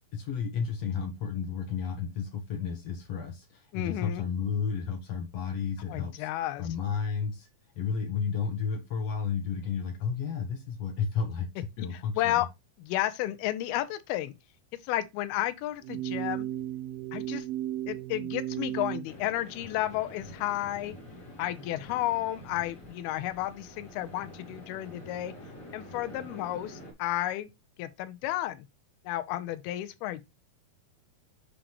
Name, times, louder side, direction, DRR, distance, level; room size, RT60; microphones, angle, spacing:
voice 1, 0.1-6.3 6.6-7.5 7.8-12.4, left 6 dB, 70° left, 1.6 m, -32 dB
voice 2, 3.7-4.2 5.9-6.7 11.8-11.9 12.2-12.5 12.8-14.3 14.9-16.5 17.1-17.5 17.9-21.0 21.4-25.3 25.7-27.5 27.8-28.7 29.1-30.2, left 14 dB, 85° left, 2.6 m, -32 dB
sound 1, 15.8-19.1, right 13 dB, 85° right, 2.4 m, -34 dB
sound 2, 19.0-26.9, left 1 dB, 30° left, 2.6 m, -47 dB
7.4 x 5.1 x 3.0 m
omnidirectional pair, 4.3 m